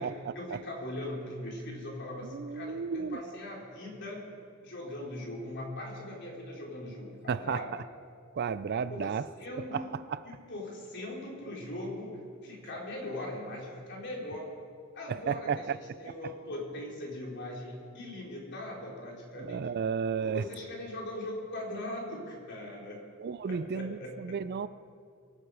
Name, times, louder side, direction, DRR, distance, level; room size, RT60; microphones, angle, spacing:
voice 1, 0.0-7.7 8.7-14.5 14.9-19.7 20.2-23.0 23.5-24.4, left 1 dB, 55° left, -3 dB, 4.0 m, -40 dB
voice 2, 2.2-3.2 7.3-7.6 8.3-9.2 9.7-9.8 10.1-10.2 15.1-15.8 19.4-20.4 23.2-24.7, right 6 dB, 50° right, 16 dB, 0.4 m, -32 dB
22.5 x 12.0 x 4.9 m, 2.3 s
head